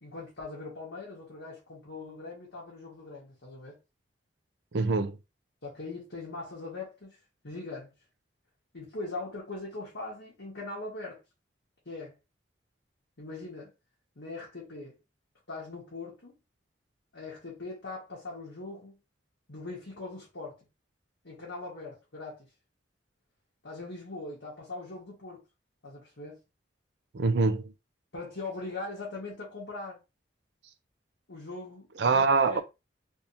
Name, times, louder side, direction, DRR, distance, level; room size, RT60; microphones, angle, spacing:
voice 1, 0.0-3.8 5.6-7.2 7.4-7.9 8.7-11.2 11.8-12.2 13.2-13.7 14.1-15.0 15.5-16.3 17.1-19.0 19.5-20.6 21.2-22.5 23.6-25.4 25.8-26.4 28.1-30.0 31.3-32.2 32.5-32.6, left 3 dB, 85° left, 1.4 m, -41 dB
voice 2, 4.7-5.2 27.1-27.7 32.0-32.6, right 4 dB, 65° right, 0.5 m, -24 dB
3.4 x 2.8 x 2.8 m
head